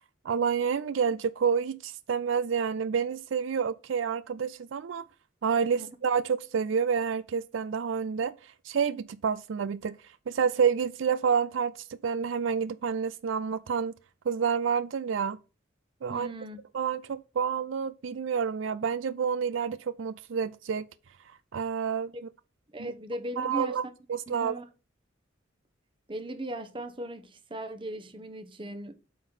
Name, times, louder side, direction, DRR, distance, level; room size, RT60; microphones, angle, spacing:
voice 1, 0.2-5.0 5.4-10.0 10.3-13.9 14.3-15.4 16.0-16.3 16.7-20.9 21.5-22.1 22.8-22.9 23.4-23.8 24.1-24.5, right 6 dB, 75° right, 0.4 m, -29 dB
voice 2, 16.1-16.6 22.7-23.8 24.3-24.6 26.1-28.9, right 1 dB, 25° right, 1.0 m, -38 dB
8.4 x 3.9 x 6.1 m
head